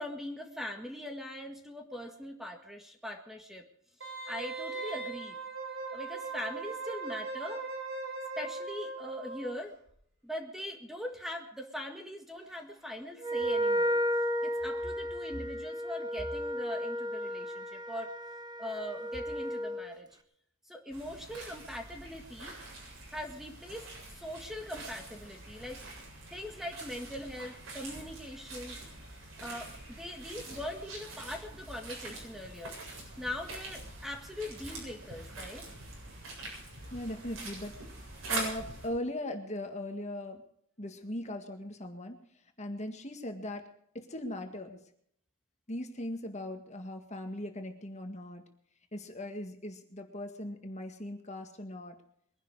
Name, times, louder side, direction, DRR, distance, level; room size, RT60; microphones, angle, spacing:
voice 1, 0.0-3.7 4.3-5.4 5.9-7.6 8.3-9.7 10.2-14.0 14.4-18.1 18.6-20.1 20.7-22.6 23.1-25.8 26.3-28.8 29.4-32.8 33.2-35.7, left 1 dB, ahead, 4 dB, 1.8 m, -41 dB
Wind instrument woodwind instrument, 4.0-9.6 9.9-10.0, right 3 dB, 65° right, 5.9 m, -39 dB
Wind instrument woodwind instrument 2, 13.2-19.9, equal, 20° right, 1.4 m, -33 dB
sound 1, 20.9-38.9, right 2 dB, 80° right, 7.8 m, -44 dB
voice 2, 36.9-37.8 38.3-40.4 40.8-42.2 42.6-43.7 43.9-44.8 45.7-48.4 48.9-52.0, left 1 dB, 35° left, 5 dB, 1.9 m, -39 dB
22.5 x 11.0 x 4.9 m, 0.69 s
head